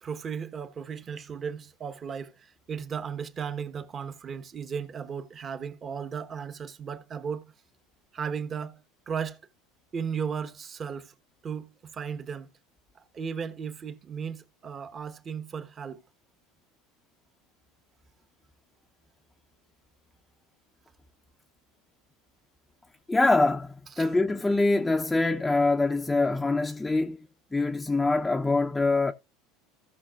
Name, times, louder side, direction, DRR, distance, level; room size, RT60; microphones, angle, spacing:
voice 1, 0.0-7.5 8.1-9.4 9.9-11.1 11.4-12.5 13.1-16.0 24.0-24.1, right 6 dB, 30° right, 1.1 m, -35 dB
voice 2, 23.1-27.2 27.5-29.1, left 2 dB, 10° left, 0.7 m, -24 dB
16.5 x 5.9 x 2.4 m
supercardioid pair, 130°, 0 cm